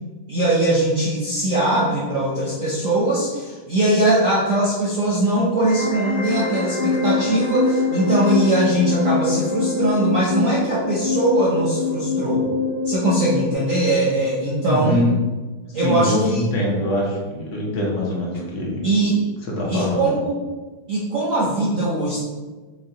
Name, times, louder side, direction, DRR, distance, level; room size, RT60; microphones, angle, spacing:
voice 1, 0.3-12.5 12.8-15.0 15.7-16.4 18.8-19.2 19.7-20.4 20.9-22.2, right 1 dB, 60° right, -6 dB, 0.9 m, -21 dB
sound 1, 5.5-13.5, left 4 dB, 85° left, 0.6 m, -24 dB
voice 2, 14.7-15.1 15.8-18.8 19.6-20.1, left 1 dB, 65° left, -3 dB, 1.4 m, -23 dB
5.5 x 2.3 x 3.8 m, 1.3 s
omnidirectional pair, 2.3 m